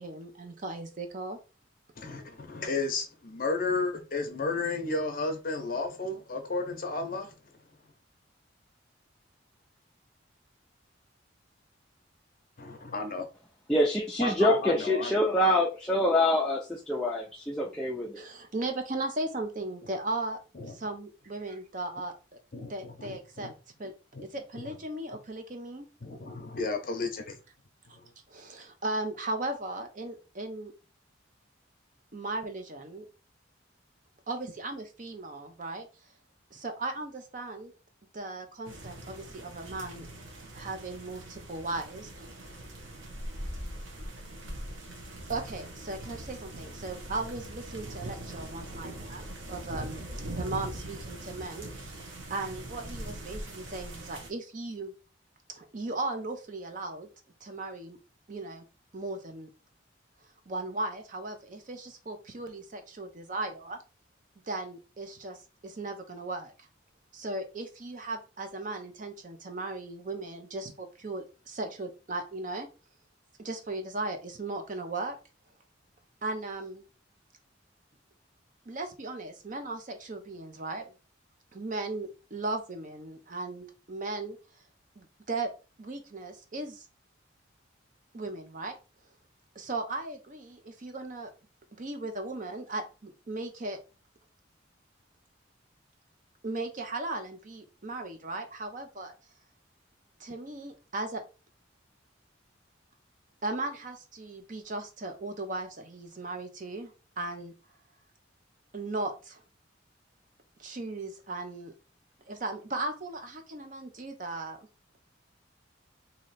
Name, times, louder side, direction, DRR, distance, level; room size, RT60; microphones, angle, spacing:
voice 1, 0.0-1.4 18.2-20.4 20.7-22.4 22.7-23.5 23.8-23.9 24.2-25.9 28.3-30.7 32.1-33.1 34.3-35.9 36.5-37.7 38.1-40.1 40.5-42.1 45.3-50.0 50.4-52.0 52.3-54.9 55.5-57.1 57.4-58.0 58.3-58.6 58.9-59.5 60.5-63.8 64.5-66.5 67.1-72.7 73.4-75.2 76.2-76.8 78.7-80.9 81.5-84.4 85.0-85.5 85.8-86.8 88.1-88.8 89.6-91.3 91.8-93.8 96.4-99.1 100.2-101.2 103.4-107.5 108.7-109.4 110.6-111.7 112.3-114.6, right 2 dB, 40° right, 0.6 m, -37 dB
voice 2, 2.0-7.4 12.6-13.3 14.2-15.4 20.5-20.7 22.5-23.5 24.1-24.2 24.5-24.8 26.0-27.4 27.9-28.1, left 3 dB, 45° left, 0.7 m, -33 dB
voice 3, 13.7-18.2, left 1 dB, 5° left, 0.4 m, -26 dB
sound 1, 38.6-54.3, right 1 dB, 90° right, 1.1 m, -41 dB
3.1 x 2.7 x 4.0 m
head